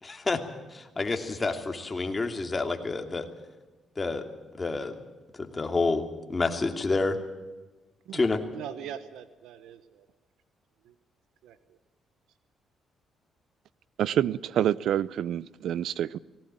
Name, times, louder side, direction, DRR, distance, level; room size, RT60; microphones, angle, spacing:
voice 1, 0.0-0.4 0.7-3.3 4.0-4.2 4.6-4.9 5.4-7.2 8.1-8.4, left 3 dB, 25° left, 2.7 m, -28 dB
voice 2, 8.5-10.1 10.8-10.9 11.4-11.8, right 9 dB, 85° right, 1.1 m, -42 dB
voice 3, 14.0-16.2, right 10 dB, 70° right, 0.6 m, -27 dB
19.5 x 17.5 x 8.9 m
cardioid pair, 90°, 0 cm